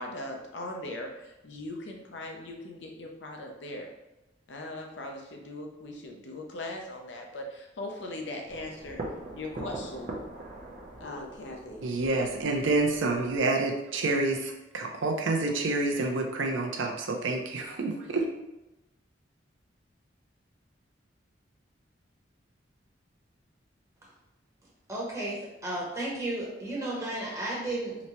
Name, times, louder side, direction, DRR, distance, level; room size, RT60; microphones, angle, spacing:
voice 1, 0.0-3.9 4.5-9.0 9.3-10.2 11.0-11.9, left 1 dB, 70° left, 1 dB, 0.6 m, -39 dB
sound 1, 8.5-13.4, right 2 dB, 40° right, 0.5 m, -42 dB
voice 2, 11.8-18.3, right 2 dB, 85° right, 3 dB, 0.5 m, -28 dB
voice 3, 24.9-28.0, right 1 dB, 15° right, -5 dB, 0.9 m, -33 dB
4.0 x 2.1 x 2.9 m, 0.95 s
head